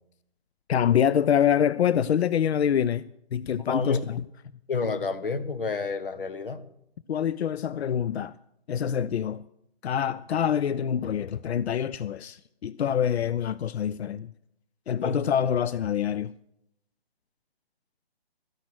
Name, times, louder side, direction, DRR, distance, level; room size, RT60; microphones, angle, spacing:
voice 1, 0.7-4.2 7.1-8.3 8.7-9.4 9.8-14.3 14.9-16.3, left 9 dB, 90° left, 0.5 m, -25 dB
voice 2, 3.6-4.0 4.7-6.6 15.0-15.2, left 4 dB, 60° left, 1.2 m, -29 dB
13.5 x 10.5 x 6.1 m
hypercardioid pair, 180°, 31 cm